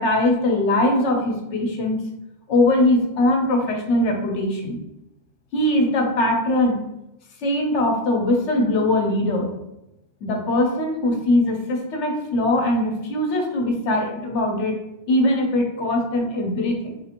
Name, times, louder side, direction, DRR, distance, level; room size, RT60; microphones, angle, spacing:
voice 1, 0.0-2.0 2.5-4.8 5.5-6.8 7.4-9.5 10.2-14.8 15.1-17.0, left 1 dB, 80° left, 2 dB, 1.0 m, -21 dB
3.5 x 2.5 x 2.8 m, 0.91 s
omnidirectional pair, 1.2 m